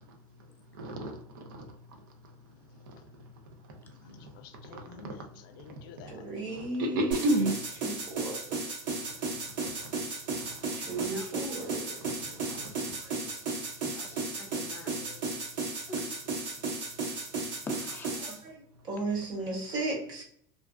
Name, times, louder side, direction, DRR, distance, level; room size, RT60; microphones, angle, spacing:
voice 1, 0.7-1.6 2.9-3.0 4.7-5.1 6.2-7.6 8.5-8.6 9.6-9.9 10.4-10.6 10.9-11.1 12.0-12.1 12.4-12.7 14.9-15.2, right 1 dB, 90° right, 0.6 m, -33 dB
voice 2, 4.0-6.1, left 7 dB, 85° left, 0.4 m, -50 dB
voice 3, 6.1-7.1 7.8-8.4 10.7-11.9 12.3-12.4 13.0-13.2 14.1-14.2 18.2-20.2, right 2 dB, 40° right, 1.0 m, -35 dB
sound 1, 7.1-18.4, right 3 dB, 70° right, 1.0 m, -34 dB
voice 4, 10.9-11.3 13.8-14.9 15.9-16.1 17.7-18.1, left 3 dB, 20° left, 0.4 m, -45 dB
2.5 x 2.3 x 2.2 m
supercardioid pair, 140°, 11 cm